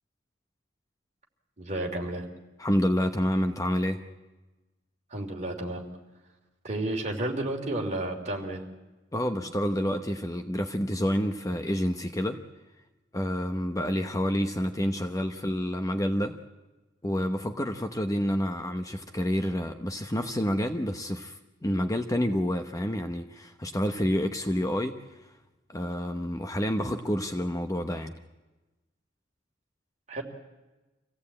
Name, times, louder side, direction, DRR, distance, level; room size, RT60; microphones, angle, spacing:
voice 1, 1.6-2.2 5.1-5.8 6.6-8.6 30.1-30.2, right 1 dB, 35° right, 2 dB, 3.0 m, -31 dB
voice 2, 2.6-4.0 9.1-12.4 13.1-16.4 17.0-25.3 25.7-28.1, equal, 15° left, 7 dB, 0.9 m, -28 dB
25.5 x 16.5 x 8.6 m, 1.1 s
head